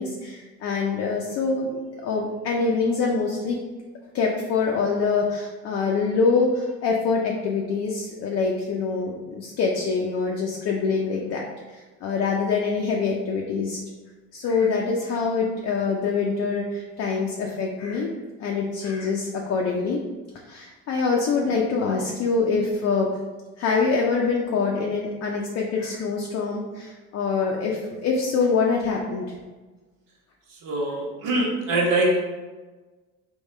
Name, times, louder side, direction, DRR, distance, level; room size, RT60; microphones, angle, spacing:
voice 1, 0.0-1.7 2.0-3.6 4.1-13.8 14.3-18.1 18.4-20.0 20.5-23.1 23.6-29.3, left 4 dB, 45° left, -1 dB, 0.5 m, -25 dB
voice 2, 30.6-32.2, right 1 dB, 70° right, -2 dB, 1.1 m, -23 dB
3.5 x 2.3 x 3.2 m, 1.2 s
supercardioid pair, 95°, 34 cm